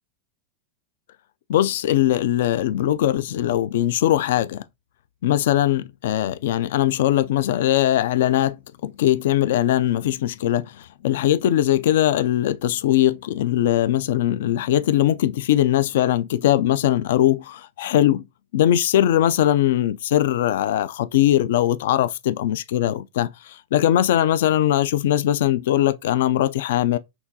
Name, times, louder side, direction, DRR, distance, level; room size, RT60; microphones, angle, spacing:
voice 1, 1.5-4.6 5.2-8.6 8.8-18.2 18.5-27.0, left 12 dB, 75° left, 0.3 m, -20 dB
5.9 x 2.3 x 2.7 m
supercardioid pair, 140°, 0 cm